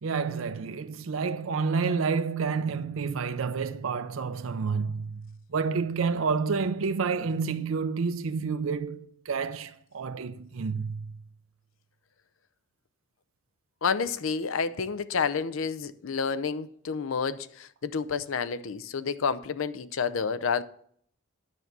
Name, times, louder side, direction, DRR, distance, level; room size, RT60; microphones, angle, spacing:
voice 1, 0.0-11.1, right 5 dB, 85° right, 0.5 m, -29 dB
voice 2, 13.8-20.6, left 5 dB, 85° left, 0.6 m, -29 dB
9.9 x 6.7 x 6.0 m
head